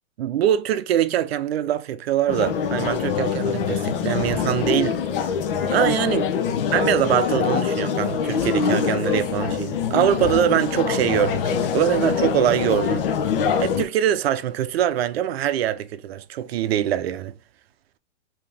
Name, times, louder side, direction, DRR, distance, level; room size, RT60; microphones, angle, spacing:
voice 1, 0.2-5.0 5.7-6.3 6.7-13.0 13.6-17.3, right 11 dB, 55° right, 0.6 m, -23 dB
sound 1, 2.3-13.8, left 7 dB, 50° left, 0.7 m, -24 dB
5.4 x 2.9 x 3.4 m
hypercardioid pair, 160°, 36 cm